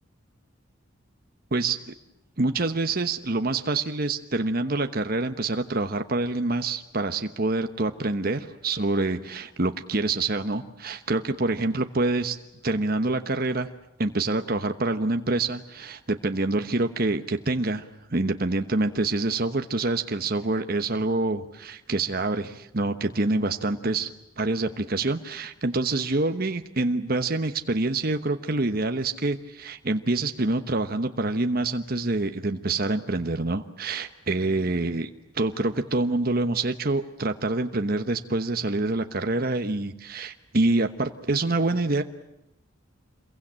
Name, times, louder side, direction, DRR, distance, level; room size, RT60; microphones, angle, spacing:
voice 1, 1.5-1.9 2.4-12.4 12.6-13.7 14.0-17.8 18.1-35.1 35.3-42.0, right 2 dB, 50° right, 7 dB, 1.1 m, -26 dB
27.5 x 22.5 x 8.9 m, 0.87 s
head